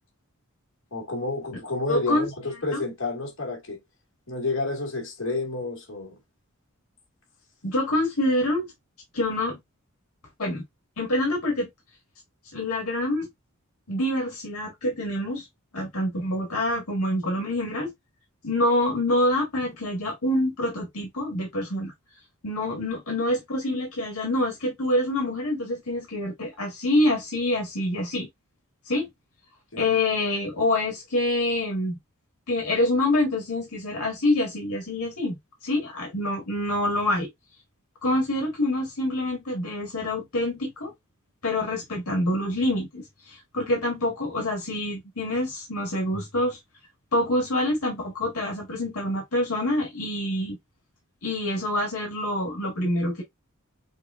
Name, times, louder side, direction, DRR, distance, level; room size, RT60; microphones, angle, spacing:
voice 1, 0.9-3.8 4.3-6.2 29.7-30.0, left 3 dB, 60° left, 2.1 m, -30 dB
voice 2, 1.9-2.3 2.7-2.8 7.6-8.7 9.1-9.6 10.4-10.6 11.0-11.7 12.5-13.3 13.9-15.4 15.7-17.9 18.4-21.9 22.4-28.3 28.9-29.1 29.7-32.0 32.5-35.4 35.6-37.3 38.0-40.9 41.4-46.6 47.1-50.6 51.2-53.2, left 1 dB, 80° left, 1.8 m, -26 dB
6.4 x 2.5 x 2.5 m
head